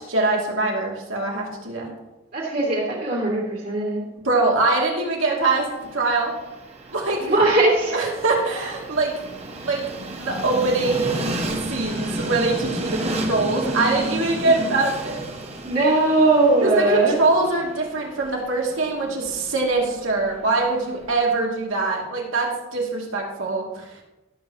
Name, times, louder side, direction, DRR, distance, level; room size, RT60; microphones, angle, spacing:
voice 1, 0.1-1.9 4.2-6.3 6.9-7.3 7.9-9.1 9.6-9.8 10.2-11.1 11.7-15.2 16.6-23.9, right 3 dB, 80° right, -1 dB, 2.5 m, -23 dB
voice 2, 2.3-4.0 7.2-8.0 15.6-17.2, right 2 dB, 45° right, -4 dB, 2.6 m, -19 dB
Train, 5.3-21.4, right 1 dB, 30° right, 1.2 m, -33 dB
17.0 x 7.6 x 3.0 m, 1.0 s
head